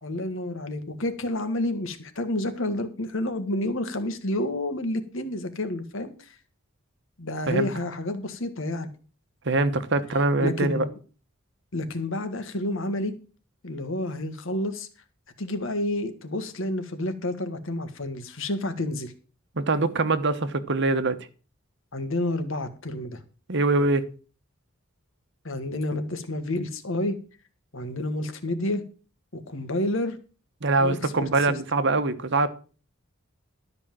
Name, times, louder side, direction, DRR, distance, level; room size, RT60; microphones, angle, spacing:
voice 1, 0.0-6.4 7.2-8.9 10.4-10.9 11.7-13.1 13.6-14.9 15.4-19.1 21.9-23.2 25.4-27.2 27.7-28.8 29.3-30.2 30.8-31.3, left 1 dB, 65° left, 1.7 m, -29 dB
voice 2, 9.4-10.8 19.6-21.2 23.5-24.0 30.6-32.5, right 3 dB, 60° right, 1.2 m, -23 dB
12.5 x 5.4 x 7.7 m
head